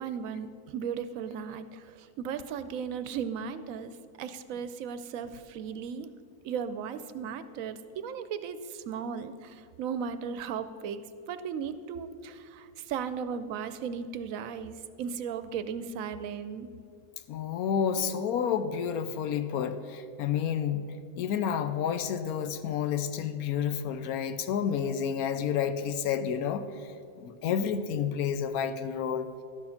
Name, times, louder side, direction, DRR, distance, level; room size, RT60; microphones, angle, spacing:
voice 1, 0.0-6.1 6.4-16.7, right 7 dB, 70° right, 12 dB, 0.9 m, -36 dB
voice 2, 17.3-29.4, left 8 dB, 90° left, 11 dB, 1.1 m, -30 dB
12.0 x 6.5 x 5.7 m, 2.4 s
omnidirectional pair, 1.5 m